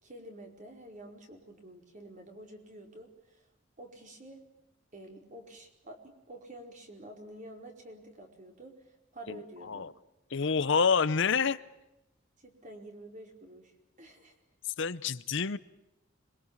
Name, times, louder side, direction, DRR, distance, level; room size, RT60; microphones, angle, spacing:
voice 1, 0.0-3.4 3.8-4.4 4.9-9.9 12.4-13.7 14.0-14.3, right 1 dB, 40° right, 3 dB, 4.8 m, -49 dB
voice 2, 9.3-9.9 10.3-11.6 14.8-15.6, left 5 dB, 65° left, 15 dB, 0.8 m, -28 dB
26.5 x 23.0 x 7.3 m, 0.91 s
head